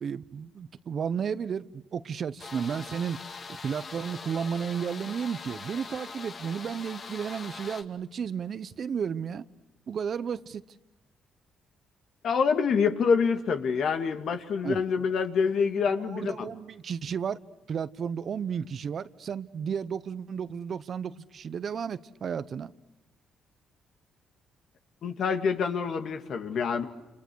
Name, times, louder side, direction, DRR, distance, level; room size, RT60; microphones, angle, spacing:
voice 1, 0.0-3.2 3.6-9.4 9.9-10.6 14.6-14.8 16.1-17.4 17.7-22.7, right 7 dB, 55° right, 1.0 m, -33 dB
sound 1, 2.4-7.8, left 4 dB, 45° left, 2.3 m, -42 dB
voice 2, 12.2-16.5 25.0-26.9, left 6 dB, 65° left, 2.4 m, -26 dB
29.0 x 29.0 x 6.4 m
cardioid pair, 90°, 0 cm